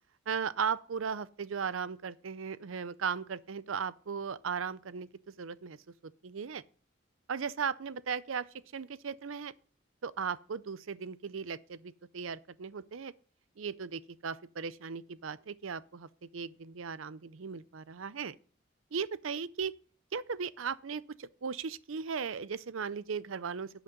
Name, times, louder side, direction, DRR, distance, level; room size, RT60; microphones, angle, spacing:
voice 1, 0.3-5.1 5.4-5.8 6.0-6.6 7.3-8.5 8.7-9.5 10.0-13.1 13.6-18.4 18.9-19.7 20.1-23.7, right 6 dB, 90° right, 0.6 m, -37 dB
11.5 x 8.1 x 3.8 m
head